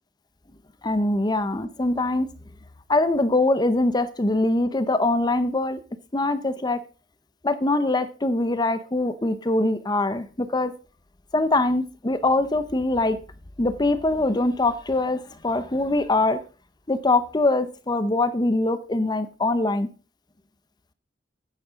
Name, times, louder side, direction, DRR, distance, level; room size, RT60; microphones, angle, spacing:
voice 1, 0.8-2.3 2.9-5.8 6.1-6.8 7.4-10.7 11.3-13.2 13.6-16.4 16.9-19.9, left 2 dB, 25° left, 12 dB, 0.7 m, -23 dB
9.4 x 9.0 x 5.0 m, 0.36 s
head